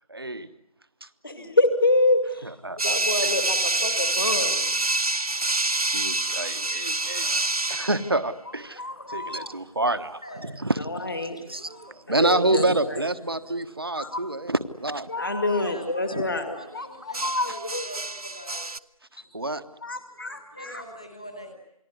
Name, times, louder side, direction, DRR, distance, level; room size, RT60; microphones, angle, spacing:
voice 1, 0.1-0.5 1.0-1.1 2.4-3.0 5.9-7.3 7.7-8.8 9.1-11.1 11.5-11.7 12.1-15.1 16.1-16.2 19.3-19.6, right 2 dB, 40° right, 12 dB, 1.3 m, -27 dB
voice 2, 1.2-4.6 8.7-9.5 10.8-13.0 13.9-14.2 15.1-17.9 19.8-20.8, left 2 dB, 40° left, 7 dB, 2.2 m, -27 dB
sound 1, 2.8-8.1 11.6-11.9 17.1-18.8, right 2 dB, 85° right, 1.1 m, -26 dB
voice 3, 10.2-10.5 15.5-18.6 20.5-21.5, equal, 10° left, 4 dB, 1.0 m, -43 dB
29.0 x 20.5 x 9.7 m, 0.82 s
figure-of-eight pair, 175°, 19 cm